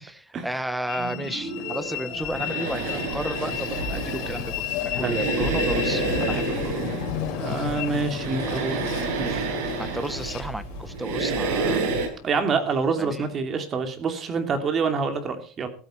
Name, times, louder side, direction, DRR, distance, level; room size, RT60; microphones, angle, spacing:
voice 1, 0.0-6.8 9.8-12.0 13.0-13.3, right 1 dB, 5° right, 15 dB, 0.9 m, -33 dB
Train, 0.9-13.3, left 11 dB, 60° left, 4.1 m, -34 dB
sound 1, 1.0-3.3 5.8-9.1, right 3 dB, 45° right, 6.3 m, -39 dB
sound 2, 2.2-12.1, right 3 dB, 75° right, 6.9 m, -29 dB
voice 2, 7.3-8.8 9.2-9.5 12.2-15.7, right 4 dB, 25° right, 7 dB, 2.8 m, -26 dB
14.5 x 13.0 x 4.4 m, 0.39 s
cardioid pair, 155°, 0 cm